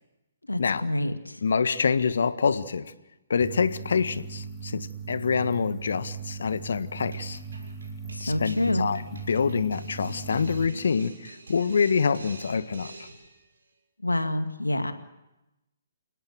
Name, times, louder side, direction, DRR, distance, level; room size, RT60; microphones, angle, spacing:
voice 1, 0.5-1.4 8.1-8.9 14.0-14.9, left 1 dB, 85° left, 8 dB, 2.2 m, -27 dB
voice 2, 1.4-2.9 3.3-7.4 8.2-9.0 9.3-12.9, left 5 dB, 60° left, 13 dB, 1.4 m, -26 dB
sound 1, 3.4-10.7, right 5 dB, 10° right, 3.5 m, -39 dB
sound 2, 7.1-13.4, right 2 dB, 65° right, 6.4 m, -46 dB
30.0 x 17.5 x 7.8 m, 0.98 s
figure-of-eight pair, 130°, 0 cm